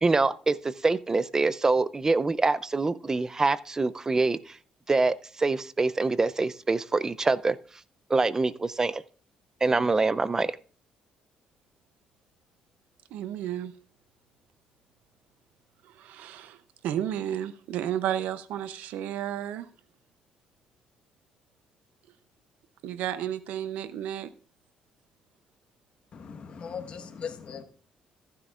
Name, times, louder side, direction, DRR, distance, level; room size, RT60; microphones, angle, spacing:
voice 1, 0.0-4.6 4.9-7.6 8.1-9.0 9.6-10.6, right 3 dB, 20° right, 0.4 m, -25 dB
voice 2, 13.1-13.7 15.8-16.6 16.8-19.7 22.8-24.3, right 11 dB, 85° right, 0.6 m, -32 dB
voice 3, 26.1-27.6, left 6 dB, 45° left, 1.3 m, -39 dB
14.5 x 9.9 x 2.5 m
cardioid pair, 100°, 3 cm